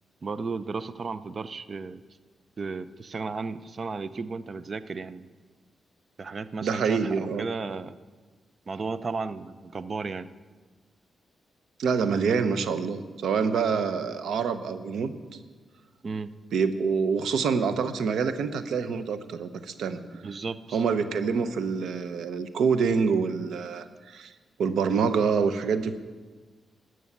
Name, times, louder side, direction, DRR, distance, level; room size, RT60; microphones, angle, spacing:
voice 1, 0.2-2.0 2.6-5.3 6.2-8.0 8.7-10.3 13.7-13.9 16.0-16.3 20.2-20.8, right 4 dB, 45° right, 14 dB, 0.6 m, -34 dB
voice 2, 6.6-7.5 11.8-15.1 16.5-20.0 20.7-24.3 24.6-26.0, right 5 dB, 85° right, 11 dB, 0.8 m, -26 dB
13.0 x 6.3 x 9.6 m, 1.4 s
cardioid pair, 80°, 0 cm